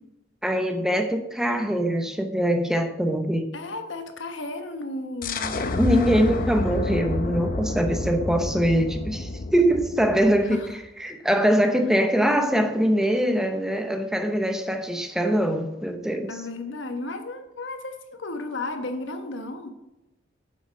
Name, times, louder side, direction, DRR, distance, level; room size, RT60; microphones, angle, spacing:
voice 1, 0.4-3.5 5.8-10.6 11.0-16.4, equal, 5° right, 6 dB, 0.7 m, -23 dB
voice 2, 3.5-5.7 10.5-10.8 16.3-19.7, left 2 dB, 75° left, 7 dB, 1.1 m, -34 dB
sound 1, 5.2-10.7, left 2 dB, 50° left, 0.7 m, -29 dB
8.4 x 7.3 x 5.1 m, 0.94 s
head